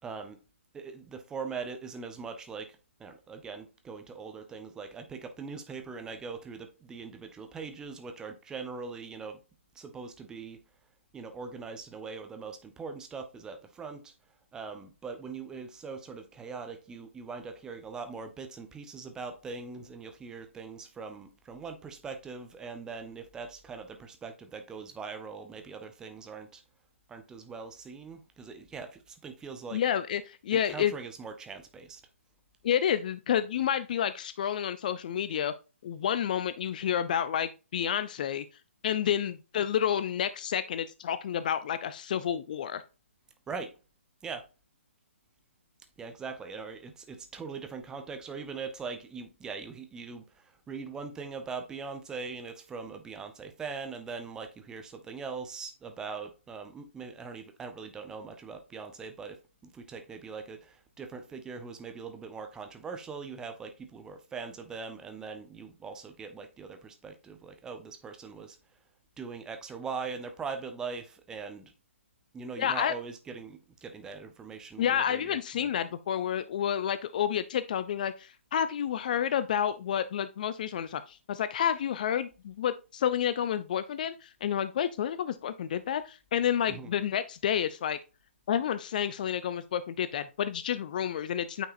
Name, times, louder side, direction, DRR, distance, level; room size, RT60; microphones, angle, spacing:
voice 1, 0.0-0.4 0.7-9.4 9.7-10.6 11.1-14.1 14.5-26.6 27.1-29.8 30.5-32.0 43.5-43.7 44.2-44.4 46.0-68.6 69.2-71.7 72.3-75.7 86.7-86.9, right 5 dB, 10° right, 0.7 m, -41 dB
voice 2, 29.7-30.9 32.6-35.5 35.8-38.4 38.8-42.8 72.6-72.9 74.8-88.0 88.5-91.7, left 9 dB, 40° left, 0.4 m, -30 dB
8.8 x 4.6 x 2.5 m
figure-of-eight pair, 135°, 7 cm